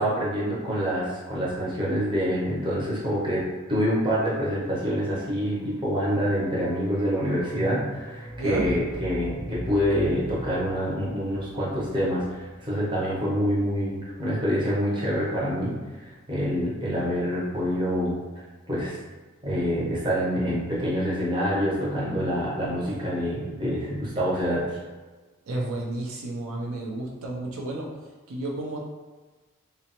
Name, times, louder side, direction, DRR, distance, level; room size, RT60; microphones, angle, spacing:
voice 1, 0.0-18.2 18.7-19.0 19.4-24.8, equal, 20° right, -7 dB, 0.7 m, -26 dB
sound 1, 5.9-14.0 14.2-14.3, equal, 20° left, 0.3 m, -40 dB
voice 2, 8.3-8.7 25.5-27.9 28.3-28.8, right 2 dB, 75° right, -2 dB, 0.5 m, -31 dB
2.9 x 2.0 x 2.8 m, 1.3 s
head